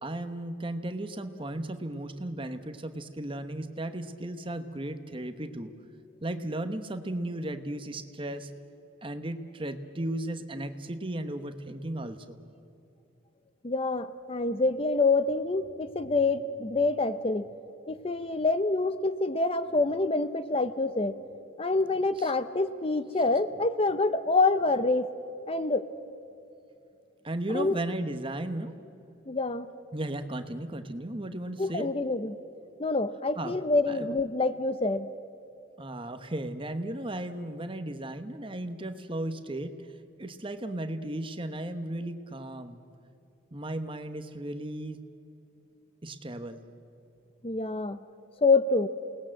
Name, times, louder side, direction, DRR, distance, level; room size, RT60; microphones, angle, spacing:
voice 1, 0.0-5.7 6.2-8.5 9.0-12.4 22.2-22.3 27.2-28.7 29.9-31.9 33.4-33.5 33.9-34.2 35.8-39.8 40.2-42.8 43.5-45.0 46.0-46.6, right 1 dB, 25° right, 9 dB, 1.1 m, -35 dB
voice 2, 13.6-17.5 17.9-21.2 21.6-25.1 25.5-25.9 27.5-27.8 29.3-29.7 31.6-32.4 32.8-35.1 47.4-48.0 48.4-48.9, left 3 dB, 30° left, 12 dB, 0.6 m, -26 dB
28.5 x 19.5 x 7.6 m, 2.7 s
head